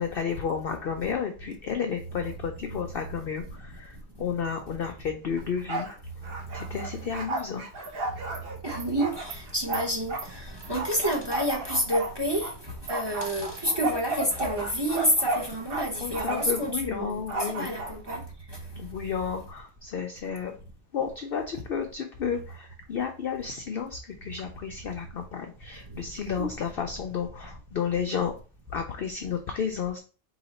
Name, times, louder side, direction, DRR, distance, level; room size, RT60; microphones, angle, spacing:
voice 1, 0.0-3.4 3.8-3.9 4.2-5.9 6.5-7.6 16.0-17.7 18.8-20.5 20.9-28.3 28.7-30.0, left 7 dB, 65° left, 0.5 m, -32 dB
Bark, 5.4-6.0 6.2-10.3 10.7-12.5 12.9-15.9 16.1-16.6 17.3-18.2, right 2 dB, 50° right, 0.9 m, -33 dB
Animal, 7.4-7.5 7.8-7.9 8.3-8.4 8.8-8.9 9.3-9.4 9.7-9.8 10.2-10.3 10.6-10.7 11.0-11.2 11.5-11.6 12.0-12.1 12.4-12.5 12.9-13.0 13.2-13.7 14.0-14.1 14.4-14.5 14.8-14.9 15.3-15.4 15.7-15.8 16.2-16.3, right 7 dB, 85° right, 1.2 m, -43 dB
voice 2, 8.6-18.2 26.4-26.5, equal, 25° right, 0.7 m, -29 dB
4.0 x 2.8 x 4.1 m
omnidirectional pair, 1.5 m